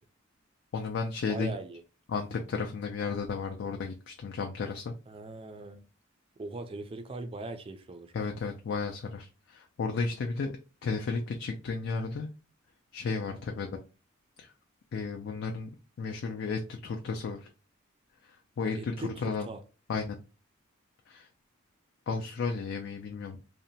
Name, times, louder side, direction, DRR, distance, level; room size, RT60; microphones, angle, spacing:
voice 1, 0.7-1.5 2.1-4.9 8.1-10.5 10.8-12.3 12.9-13.7 14.4-14.5 14.9-15.7 16.0-17.5 18.2-19.5 19.9-20.2 21.1-21.3 22.1-23.4, left 4 dB, 60° left, 0.3 m, -33 dB
voice 2, 1.3-1.8 5.1-5.8 6.4-8.1 18.8-19.6, right 2 dB, 25° right, 0.3 m, -40 dB
2.8 x 2.1 x 2.7 m
head